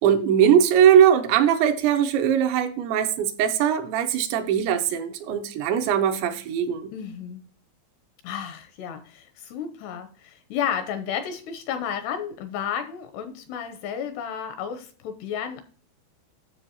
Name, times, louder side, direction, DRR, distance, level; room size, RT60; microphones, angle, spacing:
voice 1, 0.0-6.9, right 9 dB, 80° right, 3.0 m, -20 dB
voice 2, 6.9-7.4 8.2-15.6, left 8 dB, 80° left, 2.5 m, -32 dB
10.0 x 6.9 x 2.8 m
omnidirectional pair, 5.3 m